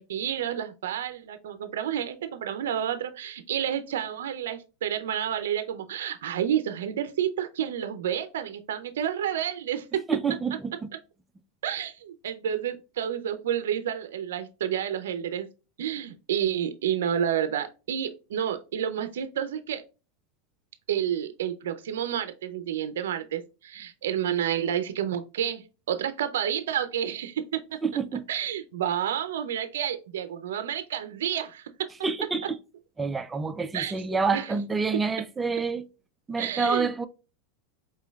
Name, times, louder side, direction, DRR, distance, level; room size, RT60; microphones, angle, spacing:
voice 1, 0.0-10.0 11.6-15.5 15.8-19.8 20.9-27.8 28.3-31.7 33.7-33.9 34.3-34.5 36.4-36.9, right 9 dB, 85° right, 0.4 m, -30 dB
voice 2, 10.1-10.7 27.8-28.2 32.0-32.6 33.0-35.9 36.3-37.1, right 4 dB, 15° right, 0.4 m, -28 dB
4.5 x 3.0 x 2.3 m
supercardioid pair, 125°, 0 cm